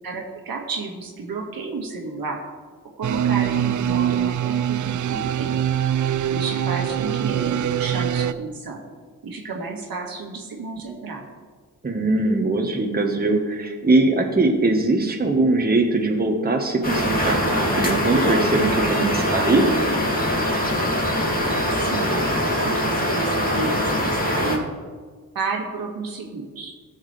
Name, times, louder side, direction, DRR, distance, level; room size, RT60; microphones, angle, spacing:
voice 1, 0.0-2.4 3.0-5.6 6.3-8.8 9.2-11.2 21.8-24.7 25.3-26.7, right 3 dB, 75° right, 0 dB, 1.9 m, -31 dB
sound 1, 3.0-8.3, right 10 dB, 55° right, 0.5 m, -23 dB
voice 2, 11.8-19.6, right 2 dB, 25° right, 2 dB, 1.3 m, -21 dB
sound 2, 16.8-24.6, equal, 25° left, 2.4 m, -22 dB
15.5 x 6.5 x 3.3 m, 1.5 s
cardioid pair, 65°, 36 cm